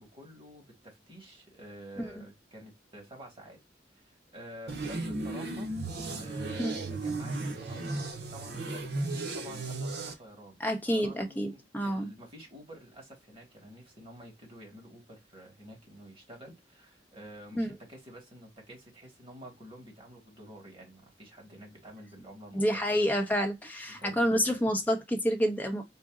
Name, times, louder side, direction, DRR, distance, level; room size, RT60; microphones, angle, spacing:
voice 1, 0.0-3.6 4.1-5.7 6.2-23.0 23.9-24.5, right 1 dB, 30° right, 1.7 m, -49 dB
sound 1, 4.7-10.1, right 2 dB, 65° right, 0.8 m, -35 dB
voice 2, 10.6-12.1 17.5-17.7 22.5-25.8, equal, 10° left, 0.8 m, -28 dB
3.9 x 2.1 x 3.6 m
head